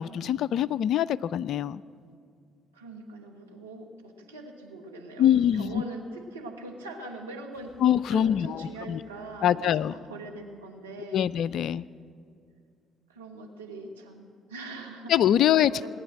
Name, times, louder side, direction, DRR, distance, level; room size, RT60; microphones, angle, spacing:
voice 1, 0.0-1.8 5.2-5.8 7.8-9.0 9.4-9.9 11.1-11.8 15.1-15.7, left 10 dB, 55° left, 20 dB, 0.3 m, -24 dB
voice 2, 2.7-7.8 8.1-11.3 13.1-15.1 15.7-15.9, right 2 dB, 85° right, 0 dB, 1.4 m, -42 dB
sound 1, 7.5-10.6, right 1 dB, 40° right, 5.6 m, -59 dB
19.5 x 9.3 x 7.7 m, 2.2 s
figure-of-eight pair, 45°, 0 cm